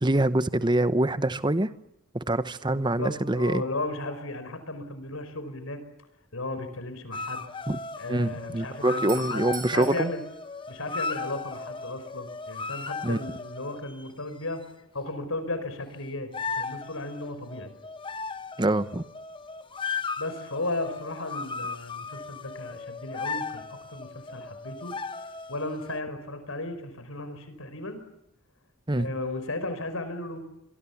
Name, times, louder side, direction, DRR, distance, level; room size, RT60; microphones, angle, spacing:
voice 1, 0.0-1.7 2.1-3.6 7.7-7.8 8.1-10.1 13.0-13.2 18.6-19.0 28.9-29.1, right 1 dB, 20° right, 14 dB, 0.9 m, -25 dB
voice 2, 2.7-5.8 6.3-7.5 8.0-10.2 10.7-14.6 14.9-17.7 20.2-23.6 23.9-24.9 25.5-28.0 29.0-30.4, left 2 dB, 85° left, 10 dB, 5.1 m, -35 dB
sound 1, 7.1-14.1 16.3-26.0, left 4 dB, 25° left, 1.1 m, -36 dB
Doorbell, 8.9-11.5, right 8 dB, 40° right, 5.0 m, -45 dB
25.0 x 24.0 x 7.3 m, 0.83 s
head